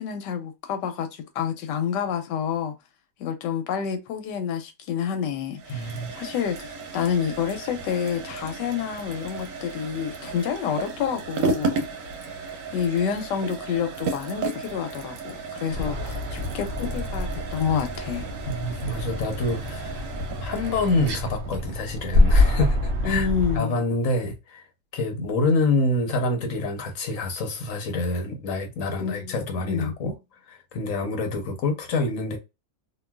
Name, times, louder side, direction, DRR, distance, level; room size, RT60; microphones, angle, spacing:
voice 1, 0.0-2.7 3.2-6.6 6.9-11.9 12.7-18.3 23.0-23.7 29.0-29.9, left 7 dB, 85° left, 1.2 m, -28 dB
sound 1, 5.5-23.3, right 3 dB, 85° right, 1.3 m, -34 dB
voice 2, 5.7-6.1 18.5-20.1 20.4-23.3 23.5-24.7 24.9-30.1 30.5-32.4, left 2 dB, 60° left, 0.9 m, -27 dB
sound 2, 15.7-23.6, left 2 dB, 60° right, 0.7 m, -26 dB
2.9 x 2.6 x 2.2 m
omnidirectional pair, 1.9 m